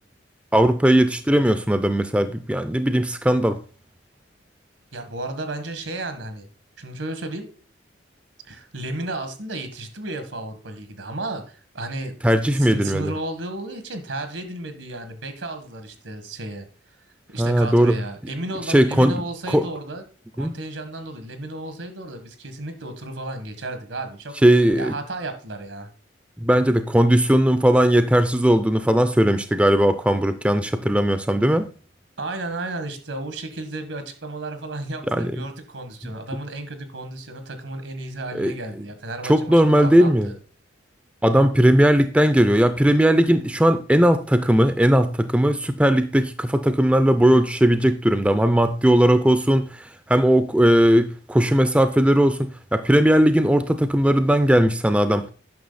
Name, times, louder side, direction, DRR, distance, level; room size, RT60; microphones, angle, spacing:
voice 1, 0.5-3.6 12.2-13.1 17.4-18.0 18.7-19.1 19.5-19.6 20.4-20.5 24.4-24.9 26.4-31.7 35.1-35.4 38.4-38.5 39.3-40.3 41.2-55.3, equal, 5° right, 0.4 m, -18 dB
voice 2, 4.9-6.5 6.8-7.5 8.4-12.1 12.5-16.7 17.3-20.0 20.4-24.3 24.7-25.9 32.2-40.3, right 2 dB, 80° right, 1.7 m, -33 dB
9.5 x 6.2 x 4.0 m
head